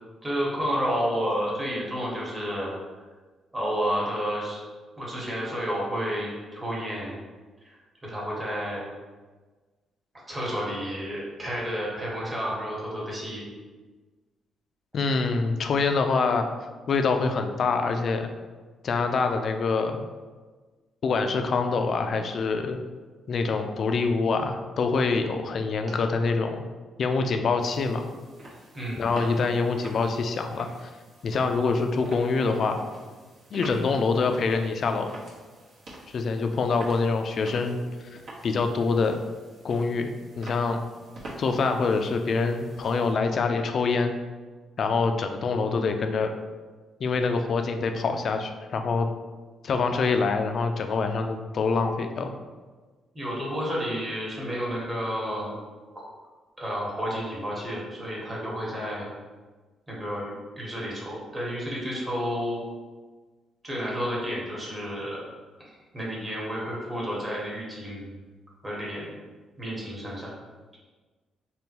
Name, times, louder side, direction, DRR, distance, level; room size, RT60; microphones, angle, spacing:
voice 1, 0.2-2.7 3.5-4.6 5.0-7.1 7.6-8.8 10.3-13.4 28.7-29.1 53.1-55.5 55.9-56.0 56.6-59.1 59.9-62.6 63.6-65.2 65.6-68.1 68.6-69.1 69.6-70.3, equal, 20° right, -5 dB, 1.2 m, -31 dB
voice 2, 14.9-16.5 16.9-18.3 18.8-20.0 21.0-22.8 23.3-26.6 27.0-28.1 29.0-30.9 31.2-32.8 33.5-35.1 36.1-37.8 38.4-39.2 39.6-40.8 41.4-44.1 44.8-46.3 47.0-49.1 49.6-52.3, left 4 dB, 55° left, 6 dB, 0.3 m, -25 dB
sound 1, 27.6-43.1, right 1 dB, 65° right, 1.0 m, -46 dB
3.6 x 2.2 x 2.9 m, 1.3 s
cardioid pair, 90°, 0 cm